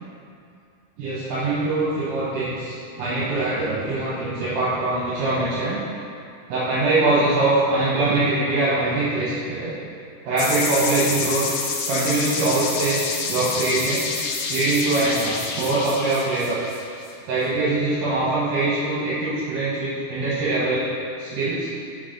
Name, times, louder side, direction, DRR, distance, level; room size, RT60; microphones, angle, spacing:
voice 1, 1.0-5.8 6.5-9.7 10.2-11.5 11.9-14.1 14.5-16.6 17.3-20.9 21.2-21.7, right 2 dB, 70° right, -9 dB, 2.5 m, -23 dB
sound 1, 10.4-17.1, left 4 dB, 85° left, 2.5 m, -28 dB
6.2 x 4.0 x 5.1 m, 2.5 s
omnidirectional pair, 4.4 m